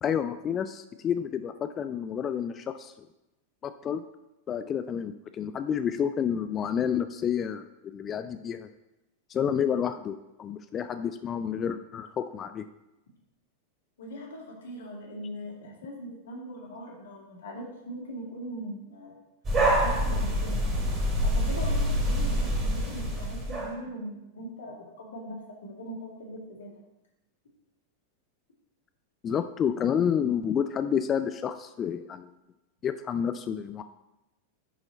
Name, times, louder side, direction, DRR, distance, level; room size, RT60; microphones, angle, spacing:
voice 1, 0.0-3.1 3.6-4.0 4.5-8.7 9.3-12.7 29.2-32.3 32.8-33.8, left 8 dB, 25° left, 11 dB, 0.4 m, -29 dB
voice 2, 14.0-19.2 19.8-20.7 21.2-26.7, equal, 65° left, -1 dB, 2.1 m, -40 dB
sound 1, 19.4-23.7, equal, 25° right, 2.9 m, -26 dB
9.9 x 4.9 x 4.1 m, 0.95 s
figure-of-eight pair, 90°, 0 cm